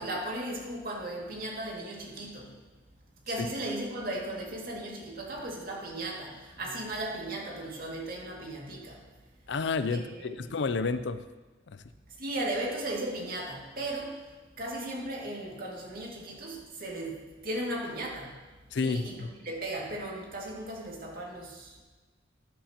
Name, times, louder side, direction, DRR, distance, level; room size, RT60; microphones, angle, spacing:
voice 1, 0.0-2.5 3.3-9.0 9.9-10.5 12.2-14.2 14.6-18.4 18.8-21.8, right 1 dB, 50° right, -2 dB, 2.2 m, -36 dB
voice 2, 9.5-11.2 11.7-11.8 18.7-19.3, left 4 dB, 65° left, 12 dB, 0.5 m, -30 dB
13.5 x 10.0 x 2.9 m, 1.3 s
head